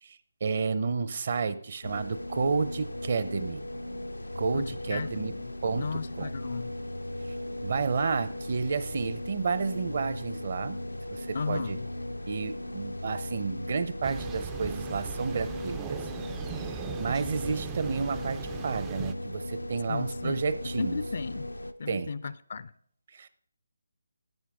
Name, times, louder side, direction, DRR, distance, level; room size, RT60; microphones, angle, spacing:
voice 1, 0.0-3.6 4.3-5.3 5.6-6.3 7.6-10.8 11.1-11.8 12.3-16.1 17.0-21.0 21.9-22.1 23.1-23.3, right 5 dB, 50° right, 0.7 m, -31 dB
sound 1, 1.8-21.7, left 1 dB, 90° left, 0.6 m, -37 dB
voice 2, 4.5-6.7 11.3-11.9 19.9-20.4 20.8-21.5 21.8-22.7, left 5 dB, 50° left, 0.4 m, -35 dB
Thunder, 14.0-19.1, right 10 dB, 15° right, 0.3 m, -40 dB
13.5 x 8.6 x 3.6 m
figure-of-eight pair, 150°, 0 cm